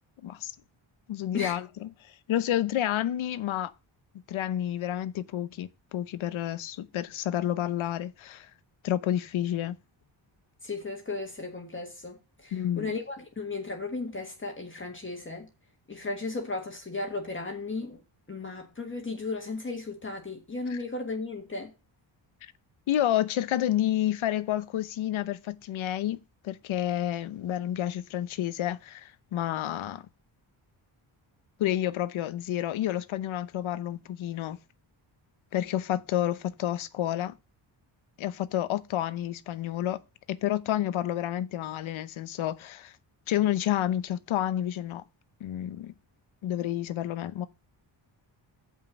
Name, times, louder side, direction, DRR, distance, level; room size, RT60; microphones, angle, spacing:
voice 1, 0.2-0.5 1.1-3.7 4.3-8.5 8.8-9.8 12.5-12.9 20.7-20.8 22.4-22.5 22.9-30.1 31.6-34.6 35.5-37.4 38.2-40.0 40.3-42.9 43.3-45.0 45.4-45.9 46.4-47.5, left 12 dB, 85° left, 0.9 m, -30 dB
voice 2, 10.6-15.5 15.9-18.0 18.3-21.7, left 3 dB, 25° left, 1.6 m, -35 dB
7.2 x 5.6 x 7.0 m
wide cardioid pair, 120°, 46 cm